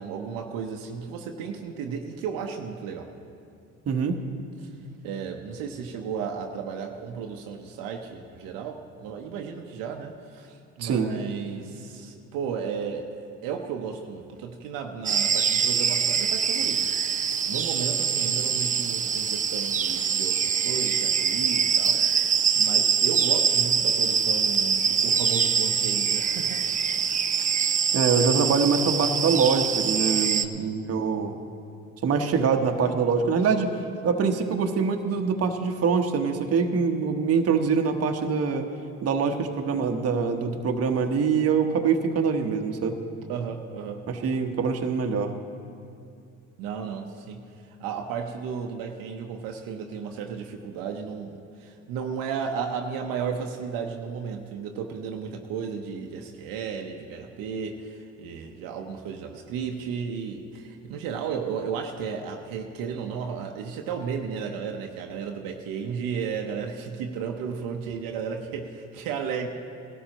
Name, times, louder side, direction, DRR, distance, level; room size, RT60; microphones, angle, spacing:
voice 1, 0.0-3.1 4.6-4.7 5.0-13.1 13.4-16.9 17.4-26.6 27.1-27.6 30.3-30.8 43.3-44.1 46.6-47.5 47.8-69.5, right 6 dB, 70° right, 3 dB, 1.0 m, -34 dB
voice 2, 3.9-4.2 10.8-11.1 27.9-31.3 32.0-33.7 34.0-38.7 39.0-43.0 44.1-45.3, right 5 dB, 45° right, 4 dB, 1.1 m, -24 dB
sound 1, 15.1-30.5, right 7 dB, 25° right, 0.4 m, -24 dB
18.0 x 13.0 x 3.0 m, 2.4 s
supercardioid pair, 75°, 35 cm